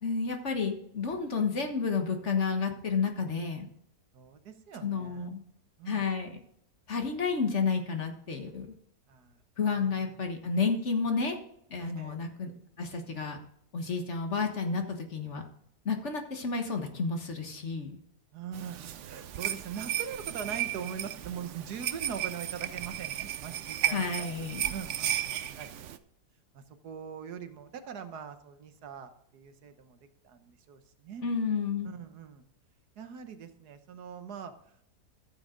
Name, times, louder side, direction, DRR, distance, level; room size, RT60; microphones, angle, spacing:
voice 1, 0.0-3.7 4.8-5.4 5.9-6.4 6.9-8.7 9.6-11.4 11.7-12.5 12.8-13.4 13.7-15.4 15.8-18.0 23.9-24.6 31.2-31.9, left 5 dB, 50° left, 4 dB, 1.6 m, -31 dB
voice 2, 4.1-5.3 5.8-6.1 9.1-9.9 10.3-10.5 11.8-12.2 18.3-25.9 26.5-30.0 30.2-31.2 31.8-32.4 33.0-34.8, right 7 dB, 80° right, 9 dB, 1.5 m, -42 dB
sound 1, 18.5-26.0, right 11 dB, 60° right, 0.8 m, -34 dB
14.0 x 7.4 x 3.8 m, 0.71 s
omnidirectional pair, 1.7 m